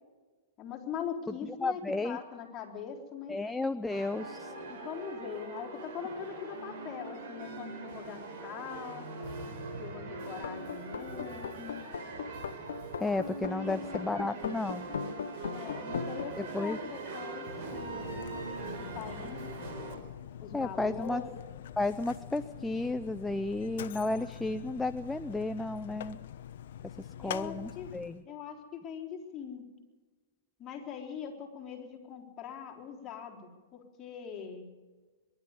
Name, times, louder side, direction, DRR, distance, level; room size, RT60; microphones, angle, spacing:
voice 1, 0.6-3.4 4.7-9.1 9.8-11.9 13.5-13.8 14.1-14.4 15.5-18.2 18.8-19.4 20.4-21.4 27.2-27.9 28.2-29.7 30.6-34.6, left 7 dB, 25° left, -1 dB, 4.0 m, -42 dB
voice 2, 1.6-2.2 3.3-4.5 13.0-14.9 16.4-16.8 20.5-21.2 21.8-26.2 27.0-28.2, left 2 dB, 5° left, 9 dB, 0.5 m, -33 dB
sound 1, 3.9-20.0, right 2 dB, 50° right, 4.9 m, -41 dB
sound 2, 10.4-16.3, left 7 dB, 90° left, 0.5 m, -39 dB
Mechanisms, 17.5-28.2, left 10 dB, 65° left, 0.9 m, -45 dB
23.0 x 12.0 x 9.8 m, 1.3 s
hypercardioid pair, 145°, 0 cm